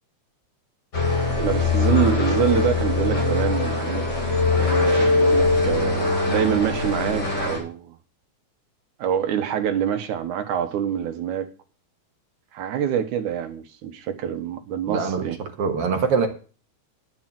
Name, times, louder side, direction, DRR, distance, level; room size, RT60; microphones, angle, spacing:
sound 1, 0.9-7.6, left 3 dB, 35° left, 4.7 m, -22 dB
voice 1, 1.4-4.1 4.6-8.0 9.0-11.5 12.5-15.4, right 9 dB, 85° right, 2.5 m, -26 dB
voice 2, 14.9-16.3, right 5 dB, 55° right, 2.3 m, -24 dB
11.0 x 6.8 x 7.5 m
omnidirectional pair, 3.4 m